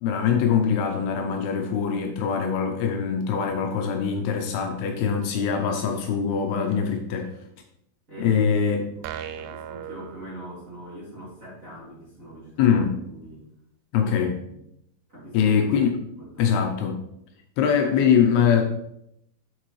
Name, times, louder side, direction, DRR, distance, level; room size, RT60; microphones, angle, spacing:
voice 1, 0.0-7.3 8.2-8.9 12.6-13.0 13.9-14.4 15.3-16.0 16.4-17.0 17.6-18.6, left 7 dB, 80° left, 3 dB, 2.5 m, -23 dB
voice 2, 8.1-8.4 8.8-13.4 14.2-14.6 15.1-15.5 15.9-16.5, right 1 dB, 25° right, -9 dB, 2.2 m, -43 dB
sound 1, 9.0-11.0, right 9 dB, 90° right, 2.1 m, -38 dB
7.5 x 6.4 x 3.2 m, 0.79 s
omnidirectional pair, 4.8 m